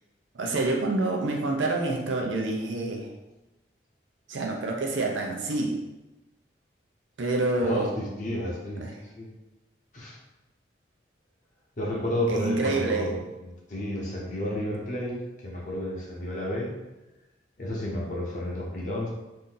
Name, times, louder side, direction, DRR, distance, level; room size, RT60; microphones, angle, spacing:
voice 1, 0.3-3.1 4.3-5.8 7.2-8.0 8.8-9.0 12.3-13.2, right 2 dB, 90° right, 1 dB, 0.6 m, -27 dB
voice 2, 7.6-8.9 9.2-9.3 9.9-10.2 11.8-16.7 17.6-19.1, left 1 dB, 40° left, -3 dB, 0.7 m, -31 dB
2.7 x 2.6 x 3.7 m, 1.0 s
head